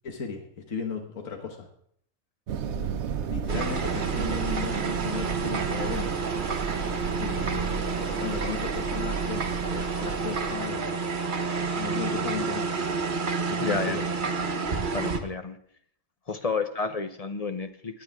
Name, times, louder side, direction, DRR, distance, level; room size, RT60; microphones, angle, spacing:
voice 1, 0.0-1.7 2.7-2.9 3.3-6.1 7.2-11.3 11.6-12.8 13.5-14.0, left 6 dB, 90° left, 3 dB, 1.6 m, -36 dB
sound 1, 2.5-10.5, right 7 dB, 65° right, 0.9 m, -33 dB
sound 2, 3.5-15.2, right 4 dB, 40° right, 1.1 m, -30 dB
voice 2, 13.6-14.0 14.9-15.6 16.3-18.0, left 4 dB, 35° left, 9 dB, 0.7 m, -30 dB
18.5 x 9.6 x 3.5 m, 0.65 s
omnidirectional pair, 1.4 m